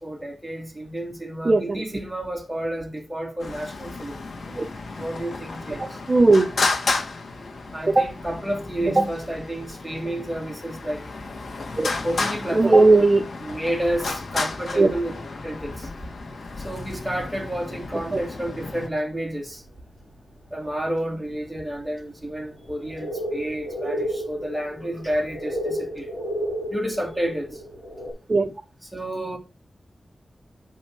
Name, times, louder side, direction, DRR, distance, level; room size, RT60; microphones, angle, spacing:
voice 1, 0.0-4.2 5.0-6.0 7.7-11.0 12.0-13.1 13.4-15.1 15.4-15.9 16.6-19.6 20.5-26.1 26.7-27.6 28.8-29.4, right 1 dB, 5° right, 3.0 m, -30 dB
voice 2, 1.4-1.8 4.6-4.7 5.8-6.5 8.8-9.1 11.8-11.9 12.5-13.2 14.8-14.9 18.1-18.2 28.3-28.5, right 2 dB, 35° right, 0.7 m, -18 dB
Traffic noise roadway noise, 3.4-18.9, left 3 dB, 80° left, 2.1 m, -32 dB
sound 1, 19.5-19.6 21.2-21.3 22.3-28.1, equal, 25° left, 6.3 m, -32 dB
8.3 x 5.4 x 6.1 m
wide cardioid pair, 125°, 0 cm